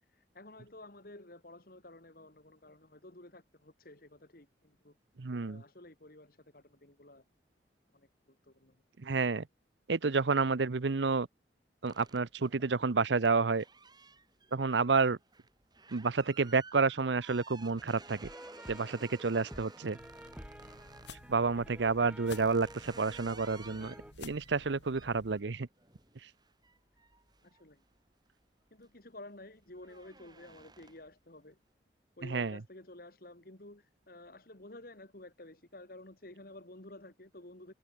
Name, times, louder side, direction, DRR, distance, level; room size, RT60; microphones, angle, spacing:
voice 1, 0.0-5.0 5.4-7.2 7.9-8.8 21.6-21.7 22.0-22.3 27.4-27.8 28.7-31.6 32.2-37.7, left 1 dB, 55° left, 2.7 m, -52 dB
voice 2, 5.2-5.6 9.0-9.4 9.9-11.3 11.8-13.6 14.5-15.2 15.9-18.2 18.7-20.0 21.3-25.7 32.3-32.5, right 4 dB, 80° right, 0.7 m, -30 dB
sound 1, 11.8-21.2 21.8-28.3 28.7-29.0 29.4-31.2, right 4 dB, 25° right, 7.0 m, -56 dB
sound 2, 17.9-24.1, equal, 5° right, 2.7 m, -52 dB
sound 3, 20.0-25.4, left 3 dB, 85° left, 4.5 m, -52 dB
head